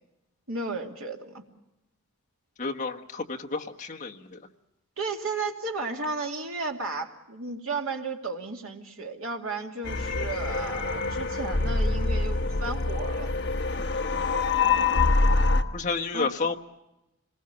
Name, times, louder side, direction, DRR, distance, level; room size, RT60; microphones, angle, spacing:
voice 1, 0.5-1.4 5.0-13.3 14.6-15.0 16.1-16.3, right 3 dB, 70° right, 2 dB, 2.7 m, -34 dB
voice 2, 2.6-4.4 15.7-16.6, left 4 dB, 35° left, 1 dB, 1.5 m, -30 dB
sound 1, 9.8-15.6, left 3 dB, 50° left, 1.4 m, -25 dB
26.5 x 20.5 x 6.9 m, 0.93 s
head